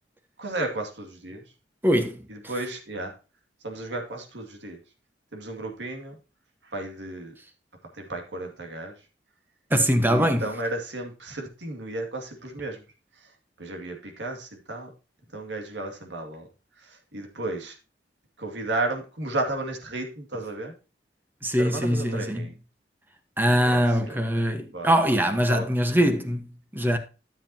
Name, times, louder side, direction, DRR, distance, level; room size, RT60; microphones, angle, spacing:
voice 1, 0.4-1.4 2.3-3.1 3.6-4.8 5.3-6.1 6.6-7.3 7.9-8.9 10.1-12.8 13.6-14.9 15.3-16.5 16.8-17.7 18.4-20.7 21.6-22.5 23.7-24.2 24.7-24.9 25.5-25.7, right 2 dB, 85° right, 2.4 m, -33 dB
voice 2, 1.8-2.3 9.7-10.5 21.4-22.5 23.4-27.0, equal, 10° right, 1.3 m, -23 dB
13.0 x 7.5 x 2.9 m
head